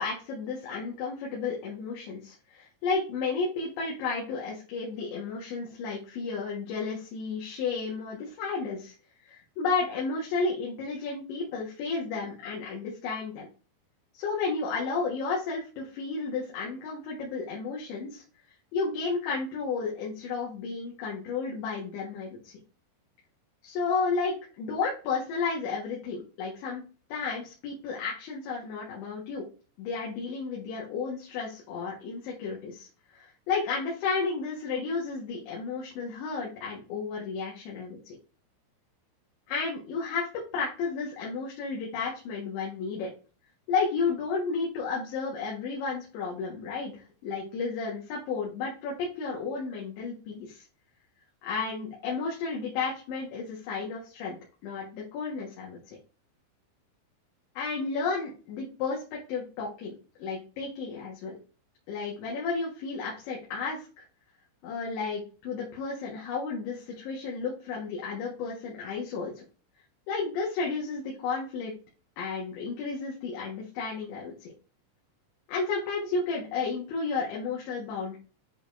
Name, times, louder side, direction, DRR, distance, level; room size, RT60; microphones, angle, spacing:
voice 1, 0.0-9.0 9.2-13.5 14.1-18.2 18.7-22.5 23.6-26.8 27.1-29.5 29.8-38.2 39.5-43.1 43.7-50.7 51.4-54.4 54.6-55.8 57.6-59.9 60.2-61.4 61.9-64.0 64.6-69.4 70.1-71.7 72.2-74.5 75.5-78.2, left 4 dB, 70° left, -3 dB, 3.5 m, -32 dB
10.5 x 4.0 x 2.6 m, 0.36 s
omnidirectional pair, 5.9 m